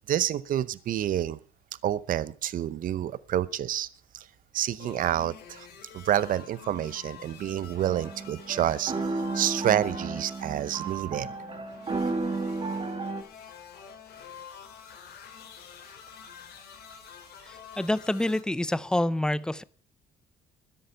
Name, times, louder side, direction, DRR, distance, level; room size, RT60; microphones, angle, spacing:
voice 1, 0.1-1.4 1.8-3.9 4.1-4.3 4.5-5.7 5.9-8.9 9.3-11.3, right 11 dB, 55° right, 18 dB, 0.7 m, -28 dB
sound 1, 4.8-18.4, left 7 dB, 75° left, 3.9 m, -47 dB
sound 2, 7.8-13.2, right 3 dB, 30° right, 2.0 m, -33 dB
voice 2, 17.5-19.6, left 1 dB, 5° left, 18 dB, 0.6 m, -27 dB
13.0 x 10.5 x 5.7 m, 0.43 s
cardioid pair, 110°, 17 cm